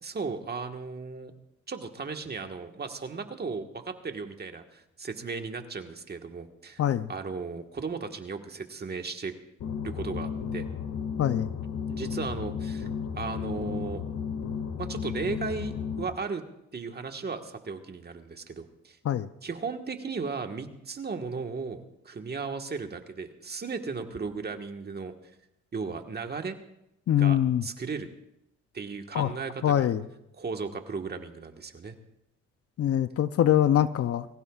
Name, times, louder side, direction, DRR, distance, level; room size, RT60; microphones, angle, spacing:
voice 1, 0.0-1.3 1.7-6.8 7.1-9.3 9.8-10.7 11.9-12.9 13.1-14.0 14.8-16.4 16.7-19.0 19.4-25.1 25.7-26.6 27.2-28.1 28.7-29.9 30.3-31.9, right 4 dB, 35° right, 5 dB, 1.6 m, -36 dB
voice 2, 6.8-7.1 11.2-11.5 19.0-19.3 27.1-27.6 29.1-29.3 29.6-30.0 32.8-34.3, left 11 dB, 50° left, 13 dB, 0.6 m, -23 dB
sound 1, 9.6-16.0, left 6 dB, 85° left, 2.1 m, -34 dB
23.5 x 15.5 x 2.4 m, 0.82 s
cardioid pair, 90°, 30 cm